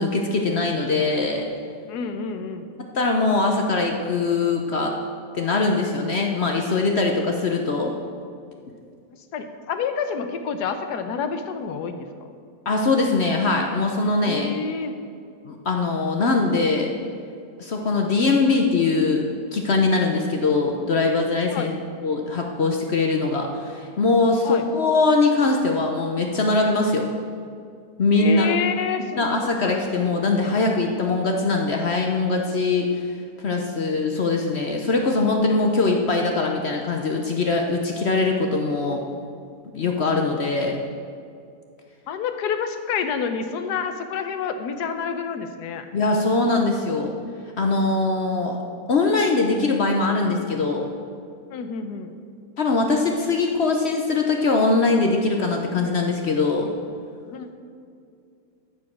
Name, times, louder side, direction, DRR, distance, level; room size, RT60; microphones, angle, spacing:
voice 1, 0.0-1.4 2.9-4.9 5.3-7.9 12.7-14.5 15.5-16.9 17.6-19.3 19.5-21.7 22.0-27.1 28.0-28.5 29.2-33.1 33.4-39.0 39.7-40.8 45.9-47.1 47.6-48.6 48.9-50.9 52.6-56.7, left 3 dB, 55° left, 2 dB, 0.8 m, -22 dB
voice 2, 1.9-2.7 9.3-12.1 14.2-14.9 20.1-20.2 21.5-21.7 24.4-24.6 28.2-29.3 29.6-29.7 42.1-45.8 51.5-52.1 57.3-57.5, left 6 dB, 75° left, 8 dB, 1.3 m, -28 dB
13.5 x 5.0 x 5.9 m, 2.4 s
omnidirectional pair, 1.8 m